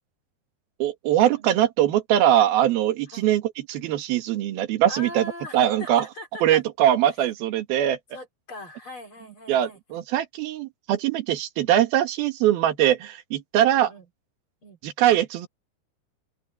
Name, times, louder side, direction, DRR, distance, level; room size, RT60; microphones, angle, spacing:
voice 1, 0.8-6.1 6.4-8.0 9.5-13.9 14.8-15.5, right 11 dB, 65° right, 3.4 m, -22 dB
voice 2, 4.9-6.6 7.0-7.1 8.1-10.0 13.7-14.0 14.6-14.8, left 2 dB, 30° left, 4.8 m, -40 dB
omnidirectional pair, 5.0 m